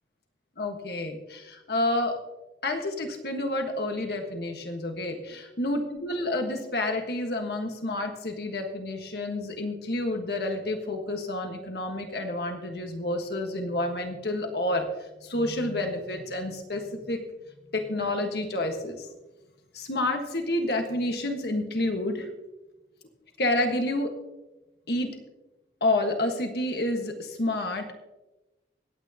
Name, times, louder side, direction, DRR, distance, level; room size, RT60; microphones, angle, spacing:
voice 1, 0.6-2.2 2.6-14.9 15.2-17.2 17.7-19.1 19.7-22.3 23.4-24.1 24.9-25.2 25.8-27.9, left 1 dB, 65° left, 4 dB, 1.5 m, -29 dB
25.5 x 9.1 x 2.9 m, 1.0 s
head